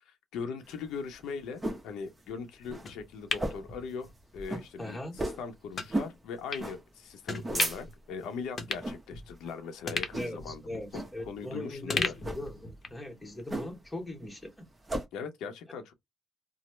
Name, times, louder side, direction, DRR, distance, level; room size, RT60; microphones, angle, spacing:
voice 1, 0.0-5.0 5.4-12.1 15.1-15.9, left 5 dB, 85° left, 0.7 m, -40 dB
sound 1, 0.7-1.9 2.3-2.4 2.6-2.9 3.3-3.8 4.1-4.2 4.5-4.7 5.2-5.5 5.9-6.2 6.6-6.8 7.2-8.1 8.7-9.0 9.4-9.7 10.1-10.5 10.9-11.2 12.1-12.4 13.5-14.0 14.3-15.1, right 1 dB, 20° right, 0.8 m, -34 dB
sound 2, 2.9-4.5 4.8-5.0 5.7-5.9 6.5-6.7 7.3-7.9 8.2-8.3 8.6-9.5 9.9-11.5 11.9-13.1 13.4-13.5, left 4 dB, 40° left, 0.7 m, -36 dB
voice 2, 4.8-5.2 10.1-14.6, left 1 dB, 10° left, 1.0 m, -40 dB
3.0 x 2.0 x 3.1 m
cardioid pair, 90°, 0 cm